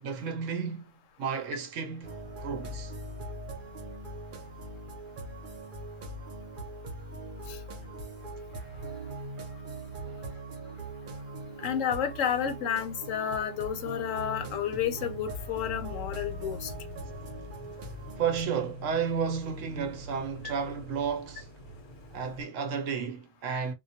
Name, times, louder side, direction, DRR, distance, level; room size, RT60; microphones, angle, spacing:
voice 1, 0.0-2.9 10.0-10.3 18.2-21.5 22.1-23.7, right 6 dB, 70° right, 0.9 m, -32 dB
sound 1, 2.0-18.4, right 2 dB, 55° right, 0.6 m, -41 dB
voice 2, 11.6-16.7 20.4-20.5, left 9 dB, 75° left, 0.9 m, -31 dB
sound 2, 14.4-22.4, left 1 dB, 35° left, 0.4 m, -45 dB
2.3 x 2.1 x 2.6 m
omnidirectional pair, 1.4 m